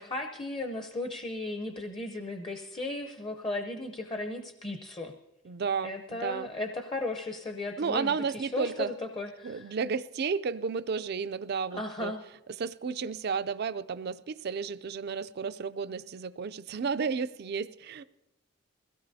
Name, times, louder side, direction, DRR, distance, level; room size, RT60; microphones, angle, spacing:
voice 1, 0.0-5.1 5.8-9.7 11.7-12.2, left 2 dB, 25° left, 5 dB, 0.7 m, -36 dB
voice 2, 5.4-6.5 7.8-8.9 9.4-12.1 12.6-18.0, right 5 dB, 50° right, 13 dB, 0.4 m, -32 dB
22.0 x 16.5 x 2.7 m, 0.92 s
head